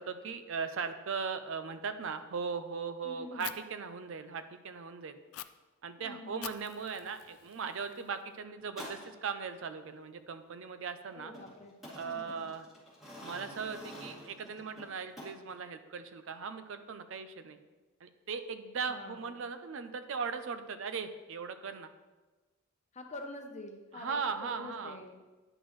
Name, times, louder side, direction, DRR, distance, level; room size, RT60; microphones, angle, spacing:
voice 1, 0.0-5.2 5.8-11.3 12.0-12.7 13.2-17.6 18.0-21.9 23.9-25.0, right 5 dB, 65° right, 10 dB, 0.5 m, -38 dB
voice 2, 3.0-3.5 6.0-6.6 11.1-11.7 12.0-12.5 18.9-19.4 22.9-25.2, left 2 dB, 35° left, 3 dB, 0.8 m, -47 dB
Fire, 3.4-3.5 5.3-5.4 6.4-8.4, left 14 dB, 80° left, 0.3 m, -46 dB
sound 1, 8.6-9.1 11.3-15.6, equal, ahead, 2.6 m, -48 dB
9.9 x 6.0 x 3.1 m, 1.2 s
head